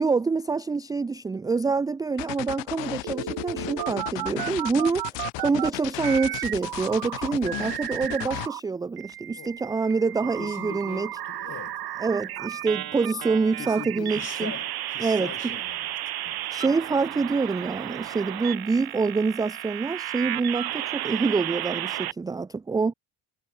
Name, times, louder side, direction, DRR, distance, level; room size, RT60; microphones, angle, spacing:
voice 1, 0.0-11.1 12.0-14.5 15.0-15.3 16.5-22.9, right 4 dB, 10° right, 0.3 m, -26 dB
sound 1, 2.2-8.5, left 23 dB, 90° left, 1.4 m, -34 dB
sound 2, 3.0-5.7 6.0-8.6 9.0-22.1, right 14 dB, 55° right, 2.0 m, -33 dB
sound 3, 9.7-19.4, left 13 dB, 55° left, 4.3 m, -53 dB
voice 2, 10.2-11.8 12.4-12.5 13.6-16.0 16.2-16.5, left 8 dB, 35° left, 2.8 m, -41 dB
cardioid pair, 135°, 43 cm